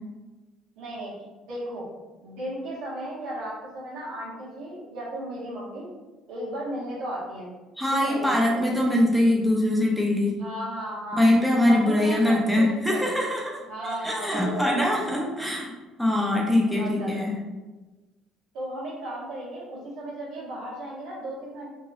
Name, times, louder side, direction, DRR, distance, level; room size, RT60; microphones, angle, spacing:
voice 1, 0.8-1.1 1.5-1.9 2.2-5.9 6.3-7.5 7.9-8.6 10.4-11.2 11.7-13.1 13.7-15.0 16.7-17.2 18.5-21.7, right 1 dB, 80° right, -7 dB, 1.0 m, -35 dB
voice 2, 7.8-10.3 11.1-15.7 16.0-17.4, left 1 dB, ahead, -2 dB, 0.5 m, -23 dB
2.9 x 2.9 x 2.6 m, 1.2 s
cardioid pair, 170°, 0 cm